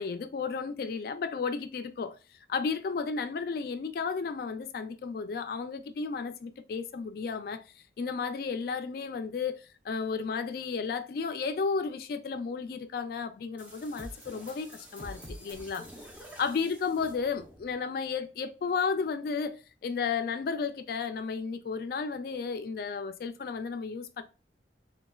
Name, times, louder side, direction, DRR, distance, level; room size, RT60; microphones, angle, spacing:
voice 1, 0.0-15.9 16.4-24.2, left 5 dB, 55° left, 0.3 m, -33 dB
sound 1, 13.6-17.7, equal, 10° right, 0.7 m, -47 dB
4.1 x 2.2 x 2.2 m
head